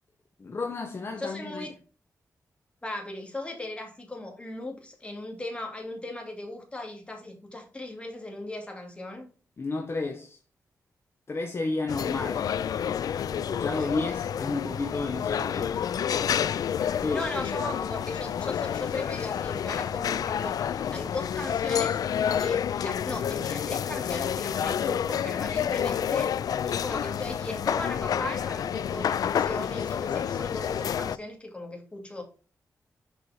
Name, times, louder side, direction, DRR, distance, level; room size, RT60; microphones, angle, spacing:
voice 1, 0.4-1.7 9.6-10.4 11.3-12.5 13.4-15.8 17.0-17.3, left 3 dB, 40° left, 1.0 m, -32 dB
voice 2, 1.2-1.7 2.8-9.3 13.8-13.9 17.1-22.0 22.4-26.3 26.7-32.2, left 2 dB, 20° left, 2.6 m, -37 dB
sound 1, 11.9-31.2, left 8 dB, 80° left, 0.3 m, -29 dB
7.0 x 5.0 x 4.3 m
wide cardioid pair, 95°, 6 cm